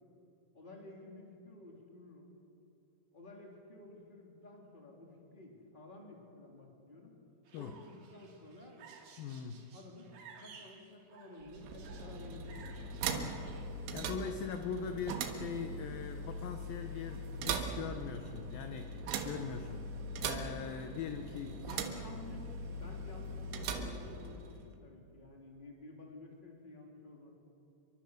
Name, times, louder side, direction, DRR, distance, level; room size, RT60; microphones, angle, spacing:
voice 1, 0.5-2.3 3.1-7.2 7.5-8.8 9.2-9.3 9.7-10.1 10.4-13.1 21.6-27.3, left 2 dB, 10° left, 0 dB, 3.0 m, -52 dB
sound 1, 7.4-13.7, right 6 dB, 55° right, 3.6 m, -57 dB
voice 2, 9.2-9.7 13.1-13.5 13.9-21.7, left 6 dB, 70° left, 6 dB, 2.3 m, -41 dB
sound 2, 11.4-24.7, right 3 dB, 80° right, 3.9 m, -40 dB
27.5 x 23.5 x 6.6 m, 2.8 s
omnidirectional pair, 5.4 m